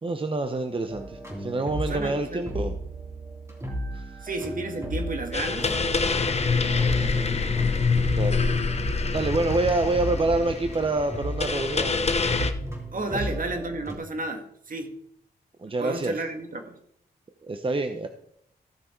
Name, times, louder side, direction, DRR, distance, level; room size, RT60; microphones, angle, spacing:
voice 1, 0.0-2.8 3.9-4.3 8.1-8.4 9.1-12.1 13.1-13.3 15.6-16.2 17.4-18.1, right 2 dB, 30° right, 7 dB, 0.9 m, -27 dB
sound 1, 0.9-14.0, equal, 15° right, 3.2 m, -35 dB
voice 2, 1.9-2.4 4.2-5.7 6.5-7.6 12.9-14.9 15.8-16.8, right 2 dB, 55° right, 5 dB, 1.9 m, -33 dB
sound 2, 5.3-12.5, left 4 dB, 40° left, 1.0 m, -25 dB
15.0 x 6.4 x 4.5 m, 0.70 s
cardioid pair, 70°, 17 cm